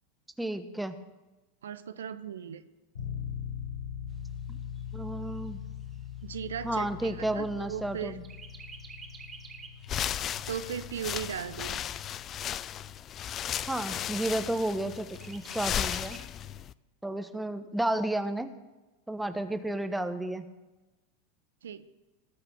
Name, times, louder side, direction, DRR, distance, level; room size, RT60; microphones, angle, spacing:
voice 1, 0.4-0.9 4.5-4.6 4.9-5.6 6.6-8.2 13.7-16.2 17.0-18.5 19.1-20.4, right 1 dB, 5° right, 9 dB, 1.2 m, -32 dB
voice 2, 1.6-2.6 6.2-8.1 10.5-11.8 21.6-21.8, right 8 dB, 75° right, 12 dB, 0.8 m, -37 dB
sound 1, 2.9-12.7, left 8 dB, 70° left, 4.5 m, -42 dB
Chirp tweet, 4.1-7.8 8.2-9.9 10.3-10.4 10.8-11.8 12.4-12.5 12.8-12.9 13.4-13.9 15.1-16.2, right 5 dB, 25° right, 2.0 m, -50 dB
sound 2, 9.8-16.7, left 10 dB, 35° left, 0.4 m, -35 dB
19.0 x 6.7 x 8.1 m, 1.1 s
figure-of-eight pair, 90°, 0 cm